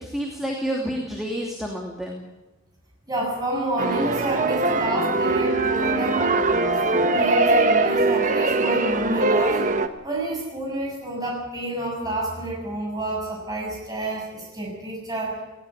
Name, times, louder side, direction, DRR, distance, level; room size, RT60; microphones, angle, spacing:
voice 1, 0.0-2.2, equal, ahead, -1 dB, 2.7 m, -29 dB
voice 2, 3.1-6.3 6.9-9.6 10.0-15.4, right 1 dB, 20° right, -2 dB, 6.8 m, -29 dB
sound 1, 3.8-9.9, right 2 dB, 40° right, 1.1 m, -21 dB
19.0 x 17.0 x 8.7 m, 1.1 s
head